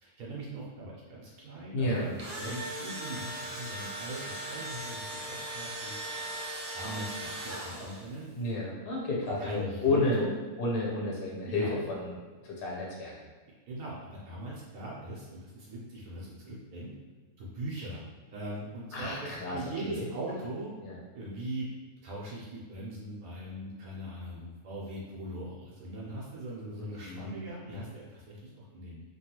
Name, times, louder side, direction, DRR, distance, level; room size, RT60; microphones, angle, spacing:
voice 1, 0.0-5.9 6.7-8.2 9.3-10.3 11.5-11.8 13.7-16.9 17.4-18.0 18.3-20.7 21.1-21.7 22.0-29.0, right 1 dB, 80° right, -6 dB, 1.2 m, -40 dB
voice 2, 1.7-2.1 8.3-10.2 10.6-12.2 12.4-13.1 18.9-19.6 19.8-20.1 20.8-21.0 26.8-27.3 27.7-27.8, left 2 dB, 55° left, -3 dB, 0.7 m, -31 dB
Engine / Drill, 1.9-8.2, right 1 dB, 55° right, 0.6 m, -39 dB
3.1 x 2.3 x 2.9 m, 1.4 s
omnidirectional pair, 1.5 m